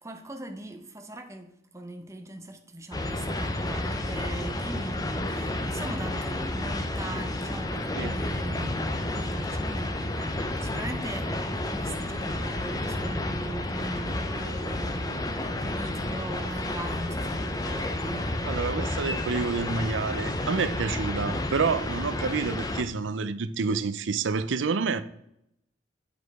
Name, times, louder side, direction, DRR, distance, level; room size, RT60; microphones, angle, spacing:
voice 1, 0.0-18.4, right 1 dB, 15° right, 0.7 m, -40 dB
sound 1, 2.9-22.8, left 1 dB, 20° left, 0.6 m, -31 dB
voice 2, 18.4-25.0, right 4 dB, 80° right, 0.5 m, -28 dB
8.3 x 5.0 x 4.7 m
head